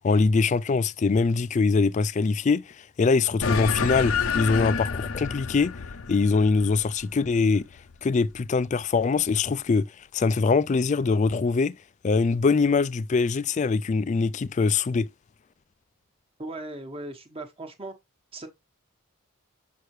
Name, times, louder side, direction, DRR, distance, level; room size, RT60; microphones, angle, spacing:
voice 1, 0.0-5.7 6.1-7.6 8.0-9.9 10.1-11.7 12.0-15.1, left 4 dB, 35° left, 0.3 m, -23 dB
sound 1, 3.4-8.2, left 5 dB, 75° left, 0.6 m, -29 dB
voice 2, 16.4-17.9 18.3-18.5, right 2 dB, 25° right, 1.2 m, -38 dB
6.5 x 5.6 x 3.1 m
head